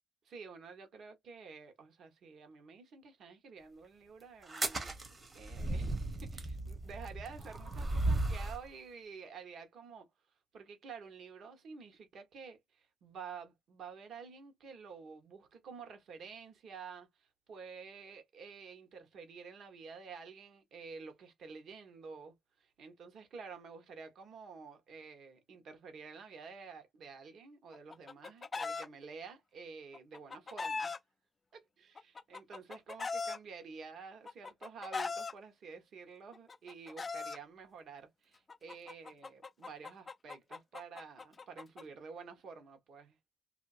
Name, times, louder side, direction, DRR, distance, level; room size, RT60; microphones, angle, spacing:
voice 1, 0.2-4.9 5.3-10.1 10.5-22.3 22.6-30.9 31.8-43.2, right 5 dB, 60° right, 1.2 m, -50 dB
sound 1, 4.4-8.7, right 2 dB, 25° right, 0.9 m, -35 dB
Chicken rooster, 27.7-28.9 29.9-31.0 32.0-33.4 34.3-35.3 36.3-37.4 38.5-41.8, left 4 dB, 25° left, 0.3 m, -39 dB
2.7 x 2.7 x 2.5 m
cardioid pair, 120°, 0 cm